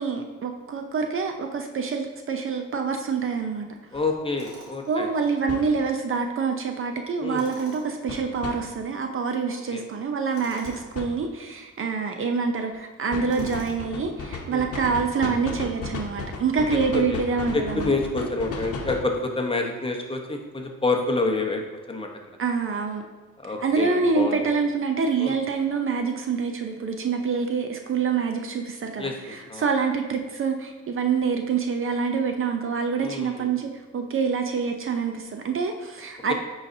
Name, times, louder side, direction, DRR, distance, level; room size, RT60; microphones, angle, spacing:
voice 1, 0.0-3.7 4.9-18.3 22.4-23.0 23.6-36.3, right 5 dB, 45° right, 5 dB, 0.6 m, -26 dB
sound 1, 3.9-4.1 5.5-5.7 8.1-8.5 10.7-11.1 13.1-19.1, left 4 dB, 50° left, 1.0 m, -34 dB
voice 2, 3.9-5.1 7.2-7.5 9.5-9.8 13.4-13.5 14.5-14.7 16.9-17.2 17.5-21.6 21.9-22.1 23.4-24.4 25.2-25.4 29.0-29.1 29.5-29.7 33.0-33.5, left 3 dB, 20° left, 2 dB, 0.9 m, -28 dB
Tools, 4.4-4.9 7.3-8.0 10.3-10.9 13.3-14.0, right 1 dB, 75° right, 1.7 m, -45 dB
9.4 x 4.0 x 2.7 m, 1.2 s
cardioid pair, 90°, 30 cm